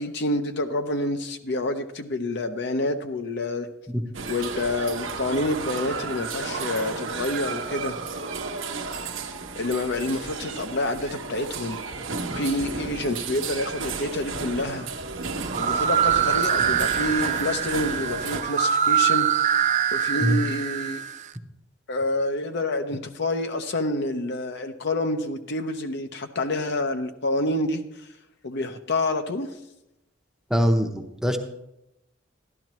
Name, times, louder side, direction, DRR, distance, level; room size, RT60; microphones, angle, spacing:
voice 1, 0.0-3.7 4.3-8.0 9.6-11.8 12.4-14.9 15.6-19.3 19.9-21.0 21.9-27.8 28.4-29.5, left 2 dB, 60° left, 7 dB, 0.7 m, -28 dB
sound 1, 4.1-18.4, right 4 dB, 75° right, 1.0 m, -33 dB
sound 2, 15.4-21.3, right 9 dB, 40° right, 0.4 m, -24 dB
voice 2, 30.5-31.4, equal, 5° right, 4 dB, 0.7 m, -22 dB
12.0 x 12.0 x 3.1 m, 0.86 s
head